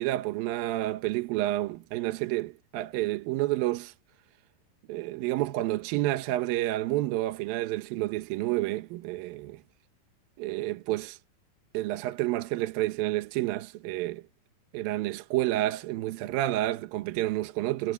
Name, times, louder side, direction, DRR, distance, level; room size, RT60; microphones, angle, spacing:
voice 1, 0.0-3.9 4.9-9.6 10.4-11.2 11.7-14.2 14.7-17.9, right 16 dB, 75° right, 2.6 m, -29 dB
omnidirectional pair, 4.4 m